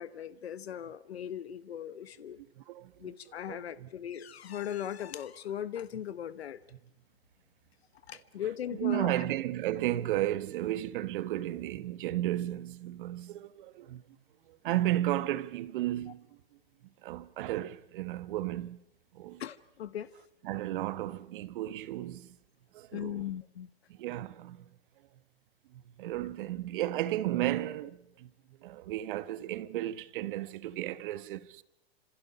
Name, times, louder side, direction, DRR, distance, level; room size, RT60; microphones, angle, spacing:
voice 1, 0.0-2.4 3.0-6.6 8.1-9.2 19.4-20.1 22.9-23.7, left 10 dB, 80° left, 1.2 m, -38 dB
voice 2, 2.4-3.1 3.5-3.9 8.4-14.0 14.5-16.3 17.0-18.8 19.1-19.4 20.4-22.4 22.7-23.3 23.9-24.7 25.7-28.3 28.6-31.6, right 14 dB, 55° right, 1.4 m, -34 dB
29.0 x 27.0 x 5.7 m
hypercardioid pair, 125°, 31 cm